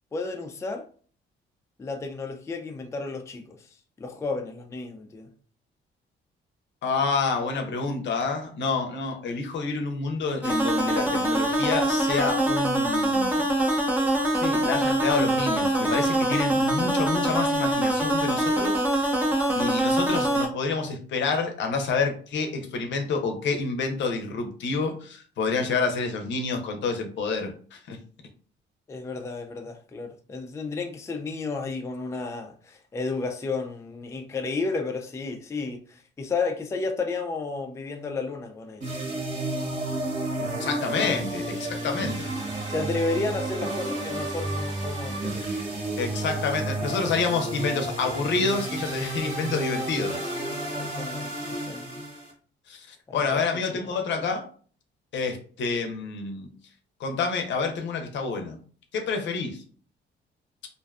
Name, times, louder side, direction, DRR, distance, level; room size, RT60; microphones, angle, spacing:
voice 1, 0.1-0.8 1.8-3.7 4.0-5.3 20.2-20.3 28.9-39.2 40.9-41.2 42.7-45.5 50.7-52.0 53.1-53.4 53.7-53.9, left 3 dB, 15° left, 0.3 m, -32 dB
voice 2, 6.8-13.4 14.4-18.8 19.6-28.0 40.6-42.3 46.0-50.2 52.7-54.5 55.1-56.5 57.0-58.6 58.9-59.6, left 4 dB, 65° left, 0.6 m, -28 dB
sound 1, 10.4-20.5, right 1 dB, 10° right, 0.7 m, -24 dB
sound 2, 38.8-52.3, right 2 dB, 35° right, 1.3 m, -31 dB
2.5 x 2.2 x 2.3 m
cardioid pair, 90°, 20 cm